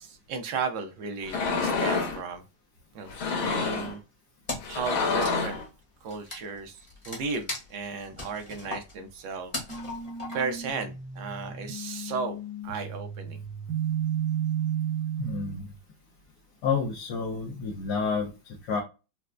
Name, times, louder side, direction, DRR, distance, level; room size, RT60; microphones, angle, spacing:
voice 1, 0.0-2.4 2.9-4.0 4.7-5.6 6.0-6.8 7.1-9.5 10.3-13.4, right 5 dB, 75° right, 6 dB, 1.4 m, -35 dB
sound 1, 1.2-2.2 3.1-3.9 4.6-5.6, left 4 dB, 85° left, 1.8 m, -28 dB
Wood, 4.5-4.8 5.1-10.7, left 2 dB, 40° left, 0.5 m, -38 dB
sound 2, 9.7-15.6, right 8 dB, 50° right, 1.5 m, -33 dB
voice 2, 15.2-15.7 16.6-18.8, left 5 dB, 70° left, 0 dB, 1.1 m, -30 dB
4.3 x 2.1 x 2.4 m, 0.29 s
omnidirectional pair, 2.2 m